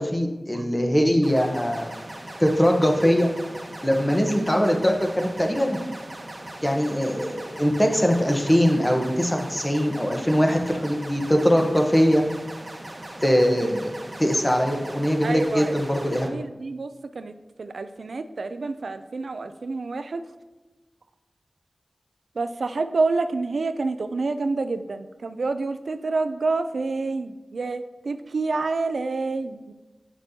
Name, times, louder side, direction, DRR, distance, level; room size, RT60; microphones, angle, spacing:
voice 1, 0.0-1.9 2.4-3.3 3.8-5.8 6.6-12.2 13.2-13.9 14.2-16.3, equal, 15° left, 3 dB, 1.0 m, -21 dB
sound 1, 1.2-16.3, right 1 dB, 40° right, 1.0 m, -39 dB
voice 2, 15.2-15.7 16.1-17.3 17.6-20.2 22.4-29.7, right 3 dB, 85° right, 9 dB, 0.3 m, -28 dB
7.9 x 6.1 x 2.8 m, 1.1 s
cardioid pair, 40°, 0 cm